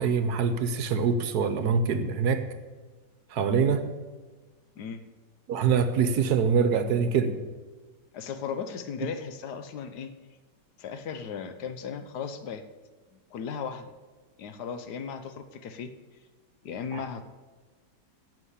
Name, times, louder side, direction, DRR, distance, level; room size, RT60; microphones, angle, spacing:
voice 1, 0.0-2.5 3.3-3.9 5.5-7.4 16.9-17.0, right 6 dB, 65° right, 10 dB, 1.3 m, -24 dB
voice 2, 8.1-10.1 10.8-12.6 13.3-13.9 14.4-15.9 16.6-17.2, left 6 dB, 70° left, 10 dB, 1.3 m, -36 dB
11.0 x 7.5 x 8.2 m, 1.3 s
omnidirectional pair, 1.9 m